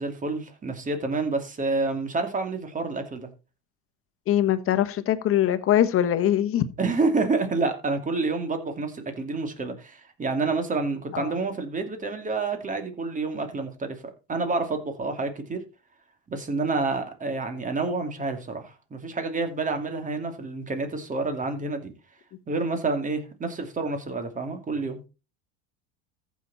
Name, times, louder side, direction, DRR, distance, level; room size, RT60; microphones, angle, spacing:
voice 1, 0.0-3.3 6.8-14.0 14.3-15.6 16.3-21.9 22.5-25.0, right 3 dB, 20° right, 2.7 m, -28 dB
voice 2, 4.3-6.6 11.1-11.3, left 11 dB, 40° left, 1.3 m, -22 dB
14.5 x 6.3 x 4.2 m
supercardioid pair, 110°, 34 cm